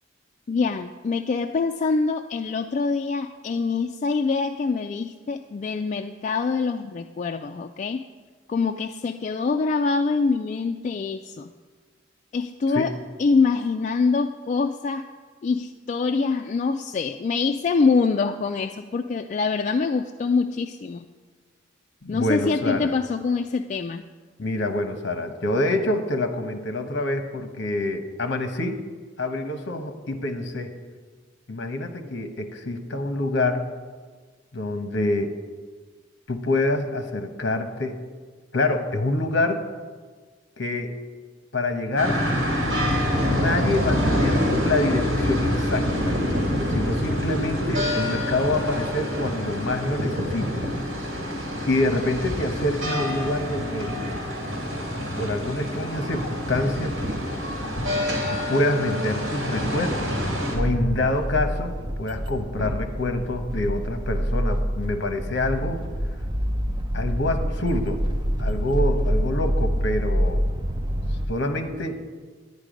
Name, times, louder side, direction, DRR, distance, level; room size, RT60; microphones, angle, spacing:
voice 1, 0.5-8.0 8.5-11.5 12.3-12.9 13.2-15.0 15.4-21.1 22.1-24.0, left 4 dB, 40° left, 5 dB, 0.3 m, -24 dB
voice 2, 22.0-22.9 24.4-28.8 29.2-30.7 31.5-33.7 34.5-35.3 36.3-38.0 38.5-39.6 40.6-40.9 41.5-42.2 43.3-46.1 46.7-50.7 51.7-53.9 55.2-57.0 58.3-60.1 60.5-65.8 66.9-68.0 68.4-70.4 71.3-72.0, left 2 dB, 65° left, 7 dB, 1.0 m, -26 dB
sound 1, 42.0-60.5, equal, 60° right, 2.7 m, -26 dB
sound 2, 60.5-71.3, equal, 25° right, 0.6 m, -26 dB
10.5 x 9.8 x 5.1 m, 1.5 s
head